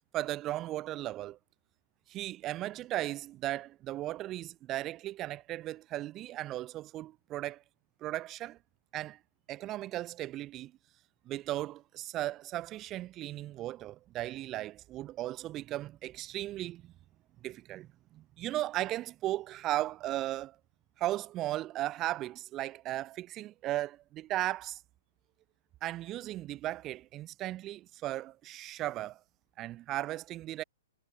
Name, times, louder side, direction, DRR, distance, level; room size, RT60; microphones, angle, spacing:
voice 1, 0.1-1.4 2.1-7.6 8.0-8.6 8.9-9.2 9.5-10.7 11.3-16.9 17.4-20.6 21.0-24.8 25.8-29.2 29.6-30.6, right 15 dB, 30° right, 1.9 m, -36 dB
figure-of-eight pair, 115°, 0 cm